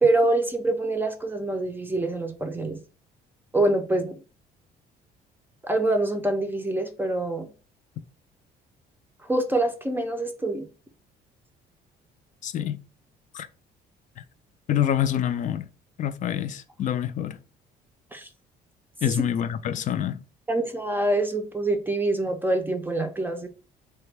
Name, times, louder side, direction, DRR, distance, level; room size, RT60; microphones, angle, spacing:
voice 1, 0.0-2.8 3.5-4.2 5.6-7.5 9.3-10.7 18.1-18.3 20.5-23.5, right 2 dB, 10° right, 0.5 m, -25 dB
voice 2, 12.4-12.8 13.3-13.5 14.2-14.3 14.7-15.7 16.0-17.4 19.0-20.2, left 10 dB, 50° left, 0.4 m, -26 dB
3.3 x 2.2 x 3.3 m
cardioid pair, 110°, 17 cm